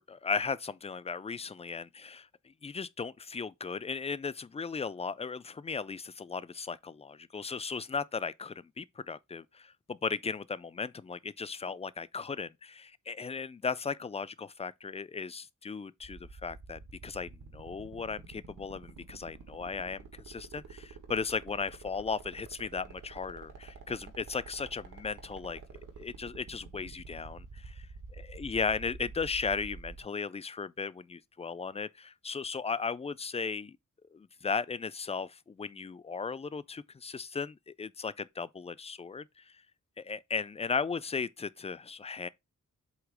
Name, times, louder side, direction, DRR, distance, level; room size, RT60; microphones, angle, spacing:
voice 1, 0.0-25.6 26.0-27.8 28.2-33.8 34.1-39.4 40.0-42.3, left 5 dB, 20° left, 0.3 m, -36 dB
sound 1, 16.0-30.0, right 4 dB, 80° right, 2.0 m, -47 dB
8.0 x 2.9 x 4.9 m
wide cardioid pair, 125°, 31 cm